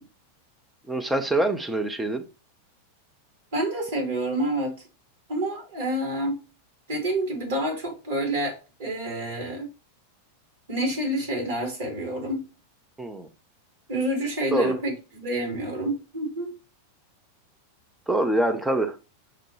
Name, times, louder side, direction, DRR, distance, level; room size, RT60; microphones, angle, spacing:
voice 1, 0.9-2.3 13.0-13.3 14.5-14.8 18.1-19.0, right 1 dB, 5° right, 0.5 m, -25 dB
voice 2, 3.5-4.8 5.3-6.4 6.9-9.7 10.7-12.4 13.9-16.5, right 1 dB, 55° right, 1.9 m, -28 dB
5.9 x 2.2 x 3.1 m
figure-of-eight pair, 90°, 0 cm